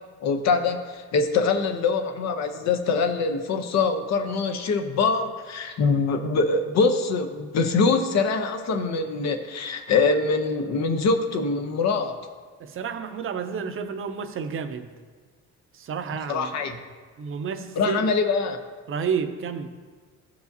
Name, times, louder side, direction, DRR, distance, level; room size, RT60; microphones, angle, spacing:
voice 1, 0.2-12.2 16.3-16.8 17.8-18.6, left 4 dB, 65° left, 7 dB, 0.7 m, -24 dB
voice 2, 12.6-14.9 15.7-16.6 17.2-18.1 18.9-19.7, right 6 dB, 45° right, 8 dB, 0.5 m, -30 dB
14.0 x 4.8 x 2.7 m, 1.5 s
cardioid pair, 125°, 29 cm